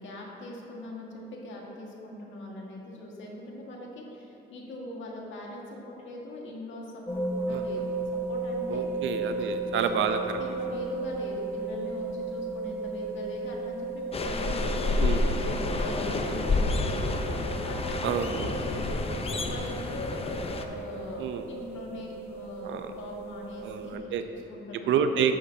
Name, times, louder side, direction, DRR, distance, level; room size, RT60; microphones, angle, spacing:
voice 1, 0.0-8.8 9.3-9.5 9.7-9.8 10.3-15.2 15.4-17.0 17.7-18.9 19.3-25.3, left 1 dB, 70° left, -2 dB, 1.8 m, -41 dB
sound 1, 7.1-24.0, right 3 dB, 10° left, 1.4 m, -35 dB
voice 2, 8.7-10.6 15.0-15.4 18.0-18.6 21.2-21.5 22.6-22.9 23.6-24.2 24.9-25.4, right 7 dB, 75° right, 8 dB, 0.6 m, -29 dB
sound 2, 14.1-20.6, left 3 dB, 30° left, 0.7 m, -29 dB
11.5 x 8.5 x 2.8 m, 2.9 s
cardioid pair, 90°, 20 cm